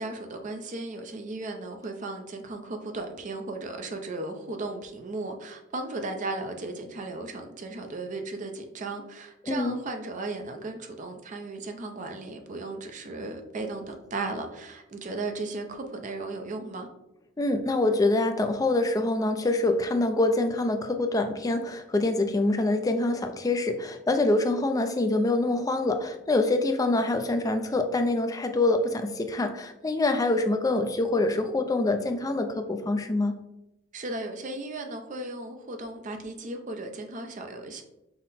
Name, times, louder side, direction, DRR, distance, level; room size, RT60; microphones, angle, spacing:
voice 1, 0.0-16.9 33.9-37.8, right 2 dB, 35° right, 5 dB, 0.5 m, -36 dB
voice 2, 9.5-9.8 17.4-33.3, left 2 dB, 15° left, 6 dB, 0.3 m, -25 dB
5.6 x 2.1 x 4.0 m, 0.90 s
head